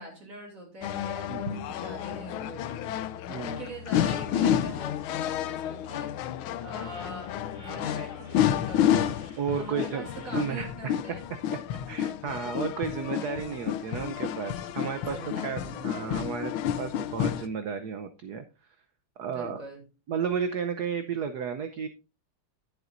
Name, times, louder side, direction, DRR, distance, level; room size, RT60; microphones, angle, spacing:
voice 1, 0.0-6.2 6.6-9.2 9.5-11.3 15.0-16.2 19.3-19.9, right 1 dB, 40° right, 2 dB, 3.4 m, -43 dB
sound 1, 0.8-17.5, left 10 dB, 80° left, 1.5 m, -30 dB
voice 2, 1.3-1.6 3.3-3.6 9.4-10.9 11.9-16.5 16.8-18.4 19.2-19.6 20.1-21.9, right 6 dB, 60° right, 8 dB, 1.1 m, -33 dB
sound 2, 6.7-10.5, equal, 15° right, 2.7 m, -53 dB
11.0 x 10.5 x 2.6 m, 0.29 s
omnidirectional pair, 2.4 m